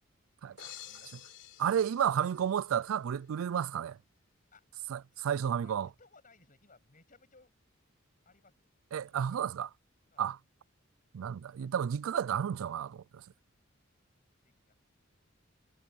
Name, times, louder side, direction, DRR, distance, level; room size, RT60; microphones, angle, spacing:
voice 1, 0.4-1.2 4.5-4.7 5.1-7.5 8.2-8.7 9.1-9.5 10.1-10.3 13.5-13.6 14.4-14.7, left 3 dB, 40° left, 7.9 m, -63 dB
sound 1, 0.6-2.8, left 12 dB, 60° left, 4.1 m, -51 dB
voice 2, 1.6-4.0 4.9-5.9 8.9-9.7 10.2-10.4 11.1-13.2, right 8 dB, 90° right, 0.4 m, -32 dB
head